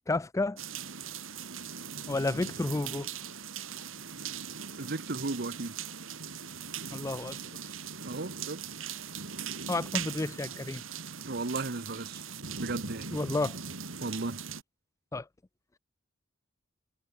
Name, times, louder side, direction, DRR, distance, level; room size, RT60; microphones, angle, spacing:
voice 1, 0.1-0.6 2.1-3.1 6.9-7.4 7.6-7.7 9.7-10.8 13.1-13.6 15.1-15.3, left 2 dB, 15° left, 0.4 m, -31 dB
sound 1, 0.6-14.6, right 7 dB, 75° right, 3.5 m, -40 dB
voice 2, 4.8-5.7 8.0-8.6 11.2-12.2 12.6-13.1 14.0-14.4, right 3 dB, 55° right, 1.2 m, -35 dB
head